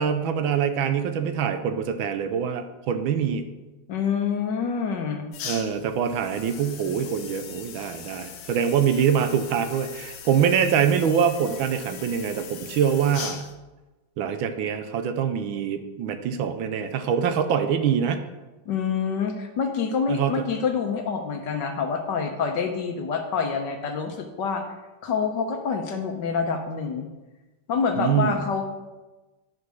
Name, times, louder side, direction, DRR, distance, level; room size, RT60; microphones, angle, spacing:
voice 1, 0.0-3.4 5.4-13.5 14.2-18.2 20.1-20.5 27.9-28.4, right 7 dB, 75° right, 9 dB, 1.4 m, -24 dB
voice 2, 3.9-5.3 18.7-24.6 25.0-27.1 27.7-28.6, left 6 dB, 65° left, 5 dB, 1.3 m, -27 dB
sound 1, 5.3-13.5, left 7 dB, 85° left, 1.8 m, -40 dB
9.2 x 5.1 x 6.2 m, 1.1 s
omnidirectional pair, 2.3 m